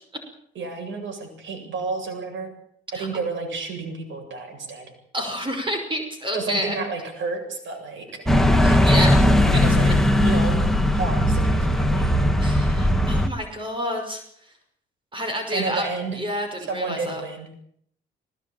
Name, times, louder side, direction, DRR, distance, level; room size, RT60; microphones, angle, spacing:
voice 1, 0.5-2.5 2.9-4.9 6.3-8.2 9.6-9.9 10.2-10.5 10.9-12.1 15.5-16.2 16.7-17.5, right 4 dB, 70° right, 4 dB, 8.0 m, -31 dB
voice 2, 5.1-6.8 8.6-9.7 12.4-14.5 15.1-15.9 16.1-17.2, equal, 25° right, 5 dB, 5.7 m, -29 dB
sound 1, 8.3-13.3, left 1 dB, ahead, 2.0 m, -18 dB
19.5 x 19.0 x 8.9 m, 0.68 s
cardioid pair, 90°, 20 cm